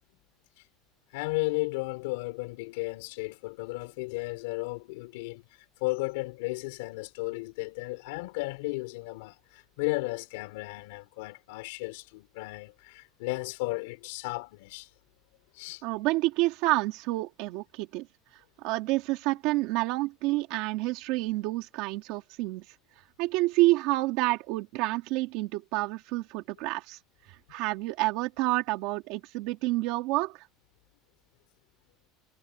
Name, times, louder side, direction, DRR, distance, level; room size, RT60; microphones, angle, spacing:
voice 1, 1.1-5.4 5.8-14.9 15.6-15.8, left 24 dB, 90° left, 3.5 m, -34 dB
voice 2, 15.8-18.1 18.6-22.6 23.2-27.0 27.3-30.5, right 20 dB, 55° right, 2.5 m, -28 dB
cardioid pair, 175°, 0 cm